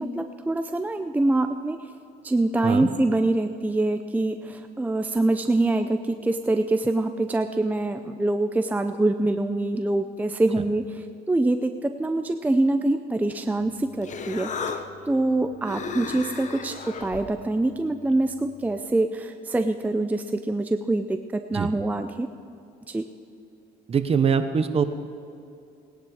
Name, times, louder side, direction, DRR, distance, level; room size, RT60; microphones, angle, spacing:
voice 1, 0.0-1.8 2.2-11.0 11.3-22.3 22.9-23.1, right 2 dB, 10° right, 7 dB, 0.5 m, -25 dB
Human voice, 13.6-18.8, left 5 dB, 45° left, 1.1 m, -37 dB
voice 2, 23.9-24.8, right 6 dB, 35° right, 9 dB, 1.0 m, -22 dB
18.0 x 10.5 x 4.9 m, 2.6 s
cardioid pair, 110°, 17 cm